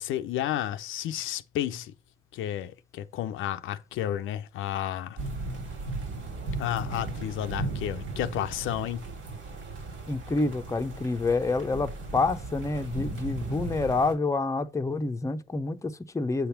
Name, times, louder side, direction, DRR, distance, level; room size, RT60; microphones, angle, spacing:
voice 1, 0.0-1.9 2.3-5.2 6.6-9.1, left 11 dB, 85° left, 0.5 m, -32 dB
sound 1, 5.2-14.2, right 3 dB, 80° right, 2.3 m, -36 dB
voice 2, 10.1-16.5, left 3 dB, 15° left, 0.6 m, -28 dB
7.9 x 3.4 x 5.7 m
cardioid pair, 90°, 20 cm